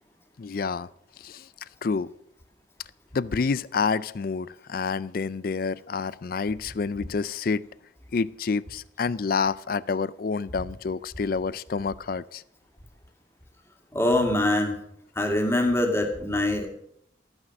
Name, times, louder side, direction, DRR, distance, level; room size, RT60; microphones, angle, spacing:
voice 1, 0.4-0.9 1.2-1.5 1.8-2.1 3.1-7.6 8.1-12.4, left 5 dB, 50° left, 19 dB, 0.4 m, -28 dB
voice 2, 13.9-14.8 15.2-16.7, left 1 dB, 15° left, 3 dB, 2.1 m, -23 dB
14.0 x 9.8 x 6.0 m, 0.71 s
head